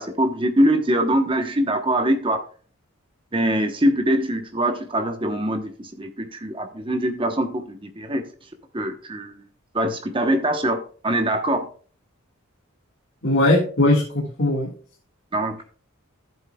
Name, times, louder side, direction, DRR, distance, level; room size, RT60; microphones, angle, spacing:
voice 1, 0.0-2.4 3.3-8.2 8.7-9.4 9.7-11.7 15.3-15.6, right 1 dB, 25° right, 6 dB, 1.0 m, -23 dB
voice 2, 13.2-14.7, left 1 dB, 55° left, -4 dB, 1.8 m, -19 dB
13.5 x 7.7 x 2.3 m, 0.43 s
head